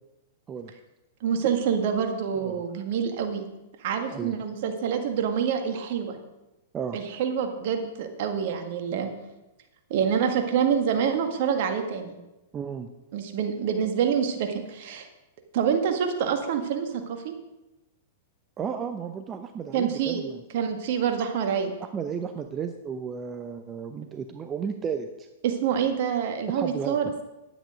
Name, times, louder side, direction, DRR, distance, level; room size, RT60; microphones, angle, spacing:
voice 1, 1.2-3.4 3.8-6.1 6.9-9.1 9.9-12.1 13.1-15.1 15.5-17.3 19.7-20.2 20.5-21.7 25.4-27.2, right 7 dB, 55° right, 6 dB, 1.7 m, -26 dB
voice 2, 12.5-12.9 18.6-20.4 21.8-25.3 26.5-27.1, right 6 dB, 25° right, 7 dB, 0.7 m, -33 dB
10.0 x 9.2 x 5.1 m, 1.0 s
hypercardioid pair, 105°, 0 cm